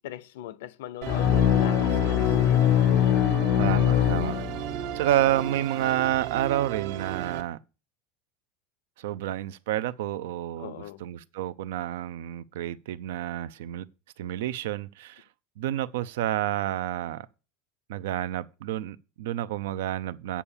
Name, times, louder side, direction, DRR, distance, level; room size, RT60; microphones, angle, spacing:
voice 1, 0.0-2.8 5.2-5.3 10.6-11.0, left 13 dB, 85° left, 0.7 m, -40 dB
Musical instrument, 1.0-7.4, right 12 dB, 60° right, 0.8 m, -35 dB
sound 1, 1.1-4.9, left 10 dB, 40° left, 0.4 m, -22 dB
voice 2, 3.6-4.5 4.9-7.6 9.0-13.9 14.2-15.2 15.6-17.3 17.9-20.4, right 12 dB, 90° right, 0.6 m, -29 dB
8.5 x 5.6 x 7.2 m
supercardioid pair, 165°, 0 cm